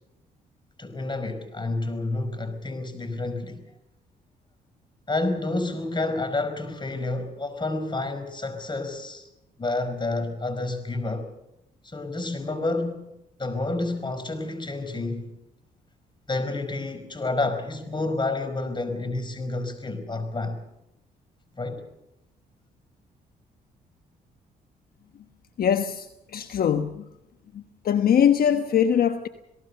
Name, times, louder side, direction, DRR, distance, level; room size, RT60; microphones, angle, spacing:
voice 1, 0.8-3.6 5.1-9.3 9.6-11.3 11.8-13.1 13.4-15.3 16.3-20.6 21.6-21.8, left 2 dB, 25° left, 5.0 m, -29 dB
voice 2, 25.6-27.1 27.5-29.3, left 8 dB, 60° left, 1.2 m, -22 dB
28.0 x 18.0 x 6.9 m
supercardioid pair, 70°, 18 cm